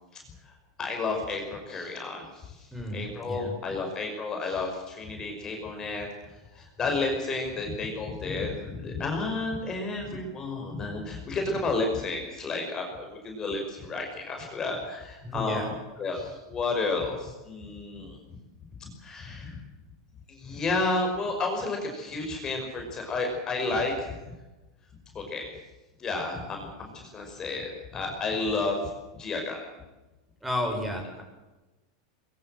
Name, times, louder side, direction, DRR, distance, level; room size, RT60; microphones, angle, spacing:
voice 1, 0.8-2.7 2.9-6.1 6.5-18.2 18.8-19.6 20.3-24.3 25.1-25.5 26.0-28.9 29.2-29.6, left 3 dB, 25° left, 2 dB, 5.6 m, -31 dB
voice 2, 2.7-3.6 15.2-15.7 30.4-31.2, left 1 dB, 5° right, 3 dB, 6.7 m, -32 dB
22.0 x 22.0 x 7.8 m, 1.1 s
supercardioid pair, 130°, 2 cm